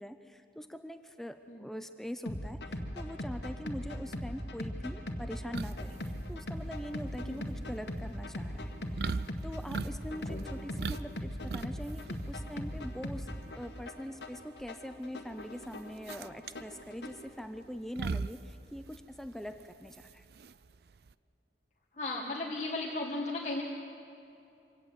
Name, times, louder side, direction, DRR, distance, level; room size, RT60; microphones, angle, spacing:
voice 1, 0.0-9.0 9.4-13.3 13.5-20.2, equal, ahead, 8 dB, 0.6 m, -43 dB
sound 1, 2.3-17.3, equal, 70° left, 1.9 m, -40 dB
sound 2, 5.5-21.1, right 4 dB, 60° right, 0.5 m, -41 dB
voice 2, 10.1-10.4 22.0-23.6, left 2 dB, 40° left, -2 dB, 1.6 m, -36 dB
25.0 x 17.5 x 8.1 m, 2.8 s
head